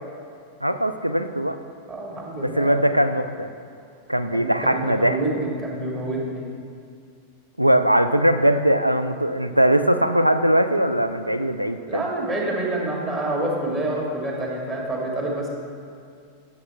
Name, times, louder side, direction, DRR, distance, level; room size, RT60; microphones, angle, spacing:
voice 1, 0.6-1.6 2.4-3.5 4.1-5.2 7.6-12.0, right 1 dB, 90° right, 10 dB, 0.3 m, -20 dB
voice 2, 1.9-2.8 4.3-6.5 11.9-15.5, right 2 dB, 30° right, -2 dB, 1.6 m, -27 dB
8.3 x 6.7 x 3.3 m, 2.3 s
figure-of-eight pair, 90°, 0 cm